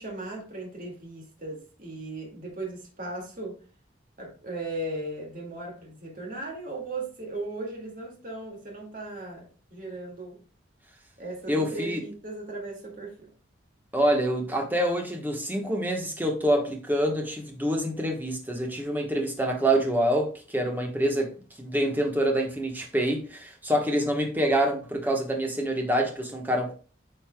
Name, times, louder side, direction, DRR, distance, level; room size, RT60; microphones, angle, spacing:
voice 1, 0.0-3.6 4.2-10.4 11.2-13.2, right 2 dB, 45° right, 2.1 m, -37 dB
voice 2, 11.5-12.0 13.9-21.3 21.6-26.7, right 1 dB, 10° right, 1.1 m, -26 dB
9.1 x 5.5 x 2.2 m
head